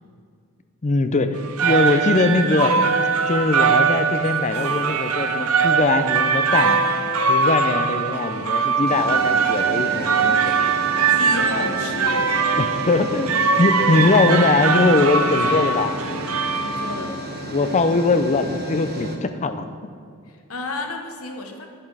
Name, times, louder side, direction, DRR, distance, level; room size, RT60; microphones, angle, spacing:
voice 1, 0.8-2.7 3.3-6.8 7.3-10.5 12.6-15.9 17.5-19.6, left 3 dB, 35° left, 9 dB, 0.5 m, -21 dB
sound 1, 1.4-17.2, right 5 dB, 85° right, 0.7 m, -21 dB
sound 2, 4.5-5.0 6.7-6.8 8.9-19.2, equal, 50° right, 1.1 m, -33 dB
voice 2, 11.1-12.3 16.6-17.2 20.3-21.7, left 3 dB, 80° left, 3 dB, 1.2 m, -32 dB
10.0 x 7.4 x 4.8 m, 2.3 s
head